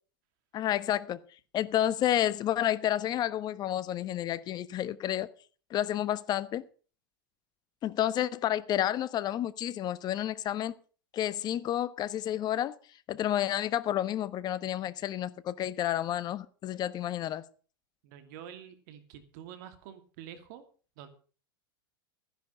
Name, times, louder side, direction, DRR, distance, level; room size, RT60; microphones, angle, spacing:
voice 1, 0.5-1.2 1.5-5.3 5.7-6.6 7.8-10.7 11.1-12.7 13.1-17.4, left 12 dB, 35° left, 1.1 m, -30 dB
voice 2, 18.0-20.7 21.0-21.1, right 10 dB, 60° right, 2.5 m, -47 dB
14.5 x 10.5 x 5.3 m
hypercardioid pair, 100°, 12 cm